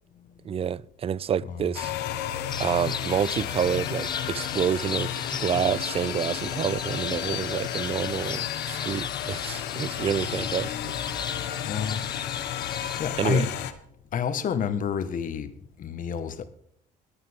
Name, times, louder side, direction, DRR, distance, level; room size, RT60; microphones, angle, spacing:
voice 1, 0.4-1.9 2.6-10.9 13.2-13.4, right 8 dB, 35° right, 0.5 m, -28 dB
sound 1, 1.7-13.7, left 11 dB, 80° left, 1.5 m, -32 dB
sound 2, 2.5-13.0, left 5 dB, 25° left, 0.7 m, -37 dB
voice 2, 11.6-12.0 13.0-13.5 14.1-15.5 15.8-16.4, left 7 dB, 50° left, 1.6 m, -29 dB
22.0 x 9.0 x 3.7 m
cardioid pair, 110°, 17 cm